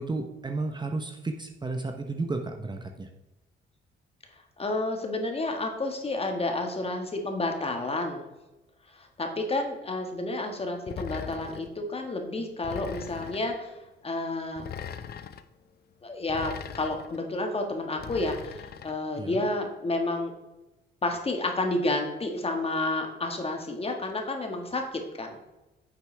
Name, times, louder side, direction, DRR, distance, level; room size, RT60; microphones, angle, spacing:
voice 1, 0.0-3.1 19.2-19.4, right 3 dB, 20° right, 5 dB, 0.8 m, -33 dB
voice 2, 4.6-8.3 9.0-13.7 14.0-14.6 16.0-20.3 21.0-25.4, left 2 dB, 30° left, 3 dB, 1.6 m, -30 dB
sound 1, 10.9-11.7 12.6-13.6 14.6-15.4 16.3-17.2 18.0-19.0, left 8 dB, 50° left, 0.6 m, -40 dB
10.0 x 6.7 x 3.3 m, 1.0 s
cardioid pair, 90°, 20 cm